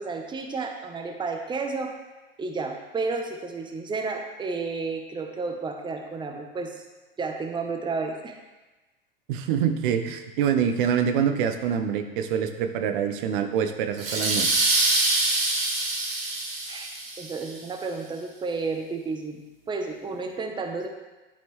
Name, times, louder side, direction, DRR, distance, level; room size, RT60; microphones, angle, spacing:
voice 1, 0.0-1.9 2.4-6.8 7.2-8.4 16.7-19.4 19.7-20.9, right 4 dB, 15° right, 3 dB, 0.9 m, -32 dB
voice 2, 9.3-14.5, right 8 dB, 60° right, 7 dB, 0.9 m, -25 dB
sound 1, 14.0-17.4, right 2 dB, 80° right, 1.7 m, -25 dB
11.5 x 4.3 x 3.2 m, 1.2 s
hypercardioid pair, 85°, 29 cm